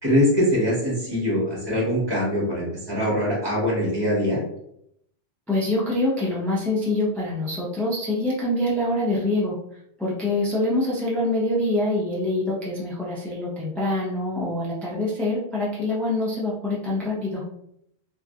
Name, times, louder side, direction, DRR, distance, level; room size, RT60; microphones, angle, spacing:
voice 1, 0.0-4.4, equal, 20° right, -6 dB, 1.2 m, -23 dB
voice 2, 5.5-9.6 10.0-17.4, left 1 dB, ahead, -7 dB, 0.4 m, -25 dB
3.0 x 2.5 x 2.3 m, 0.73 s
omnidirectional pair, 1.2 m